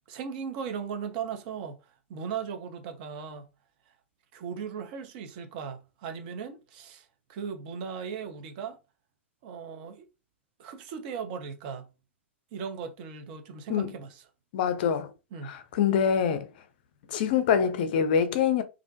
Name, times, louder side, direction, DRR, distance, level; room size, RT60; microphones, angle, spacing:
voice 1, 0.1-3.5 4.3-8.8 9.4-10.1 10.6-11.9 12.5-14.2 15.3-15.6, right 6 dB, 45° right, 0.6 m, -37 dB
voice 2, 14.5-15.1 15.4-16.5 17.1-18.6, left 7 dB, 50° left, 0.4 m, -25 dB
2.4 x 2.1 x 2.6 m
figure-of-eight pair, 100°, 7 cm